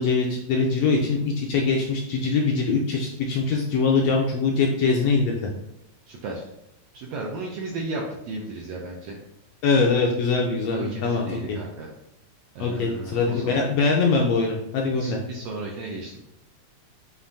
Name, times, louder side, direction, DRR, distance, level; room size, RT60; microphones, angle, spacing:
voice 1, 0.0-5.5 9.6-11.6 12.6-15.2, left 4 dB, 75° left, 0 dB, 1.5 m, -23 dB
voice 2, 6.1-6.4 6.9-9.2 10.7-11.9 12.5-13.6 14.9-16.2, right 2 dB, 80° right, -1 dB, 1.5 m, -34 dB
7.1 x 2.6 x 2.6 m, 0.83 s
omnidirectional pair, 3.4 m